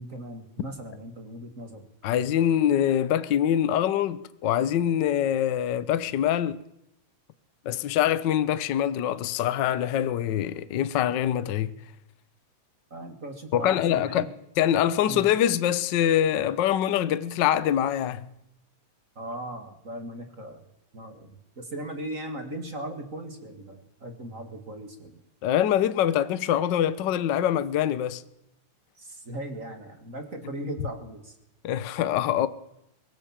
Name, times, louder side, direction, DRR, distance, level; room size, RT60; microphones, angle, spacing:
voice 1, 0.0-1.9 12.9-14.3 15.0-15.2 19.2-20.7 20.9-25.2 29.0-31.4, right 1 dB, 30° right, 2.1 m, -38 dB
voice 2, 2.0-6.6 7.6-11.7 13.5-14.3 14.6-18.3 25.4-28.2 31.6-32.5, left 10 dB, 85° left, 0.9 m, -24 dB
23.0 x 19.0 x 7.4 m
omnidirectional pair, 3.3 m